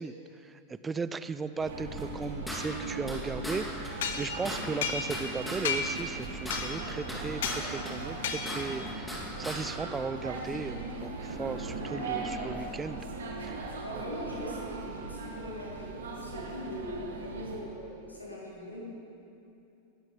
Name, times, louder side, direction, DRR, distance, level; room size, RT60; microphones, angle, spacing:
voice 1, 0.0-13.1 13.4-13.6, right 4 dB, 15° right, 13 dB, 0.4 m, -37 dB
sound 1, 1.6-17.6, right 3 dB, 65° right, 1.8 m, -39 dB
sound 2, 2.0-3.2 3.4-3.6 3.8-3.9 4.2-5.6 5.9-7.6 7.8-9.2 9.4-9.6, equal, 5° left, 2.9 m, -38 dB
sound 3, 4.0-5.3 5.6-6.1 6.5-6.9 7.4-7.6 8.2-8.7, left 6 dB, 55° left, 1.1 m, -33 dB
voice 2, 13.8-19.0, equal, 80° left, -5 dB, 3.6 m, -40 dB
19.0 x 12.0 x 4.0 m, 2.8 s
figure-of-eight pair, 90°, 0 cm